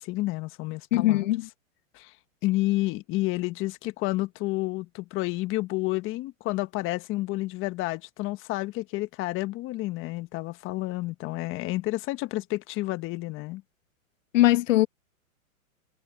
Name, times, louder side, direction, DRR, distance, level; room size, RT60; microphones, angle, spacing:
voice 1, 0.0-1.3 1.9-2.1 2.4-13.6, left 19 dB, 30° left, 1.3 m, -30 dB
voice 2, 0.9-1.5 14.3-14.9, left 16 dB, 65° left, 1.3 m, -21 dB
hypercardioid pair, 135°, 42 cm